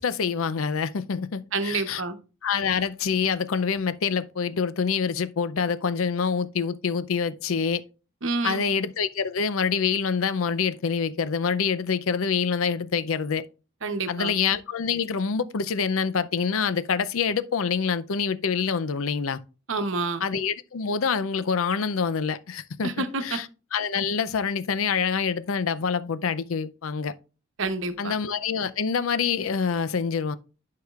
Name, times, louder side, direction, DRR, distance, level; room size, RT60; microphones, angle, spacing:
voice 1, 0.0-2.0 2.4-7.8 8.4-13.4 14.1-19.4 20.2-22.9 23.2-23.5 23.7-27.1 28.0-30.4, left 6 dB, 80° left, 0.5 m, -26 dB
voice 2, 1.5-2.2 8.2-8.7 13.8-14.3 19.7-20.2 22.8-23.4 27.6-28.1, right 3 dB, 65° right, 0.9 m, -28 dB
11.5 x 4.8 x 2.4 m
head